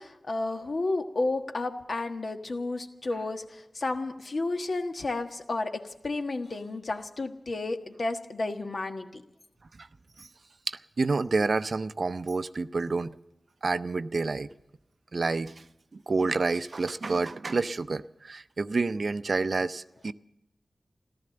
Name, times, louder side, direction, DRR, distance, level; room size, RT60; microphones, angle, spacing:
voice 1, 0.0-9.2, left 2 dB, 65° left, 5 dB, 1.4 m, -32 dB
voice 2, 10.7-13.2 13.6-14.5 15.1-15.6 15.9-20.1, right 3 dB, 65° right, 14 dB, 0.5 m, -29 dB
14.5 x 12.5 x 7.8 m, 0.87 s
cardioid pair, 40°, 0 cm